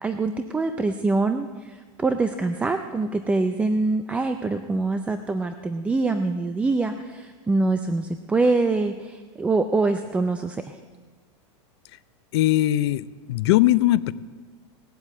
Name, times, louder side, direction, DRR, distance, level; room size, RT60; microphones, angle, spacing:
voice 1, 0.0-10.8, right 3 dB, 10° right, 7 dB, 0.4 m, -24 dB
voice 2, 12.3-14.1, left 15 dB, 60° left, 15 dB, 0.6 m, -20 dB
19.0 x 8.0 x 8.5 m, 1.4 s
supercardioid pair, 160°, 16 cm